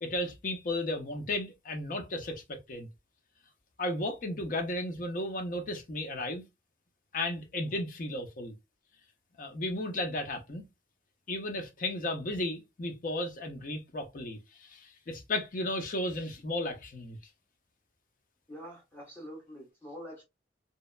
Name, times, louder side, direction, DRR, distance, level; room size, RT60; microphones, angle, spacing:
voice 1, 0.0-2.9 3.8-6.4 7.1-8.5 9.4-10.7 11.3-17.2, left 1 dB, 50° left, 0.6 m, -34 dB
voice 2, 18.5-20.2, equal, 10° left, 1.2 m, -45 dB
2.7 x 2.1 x 2.2 m
head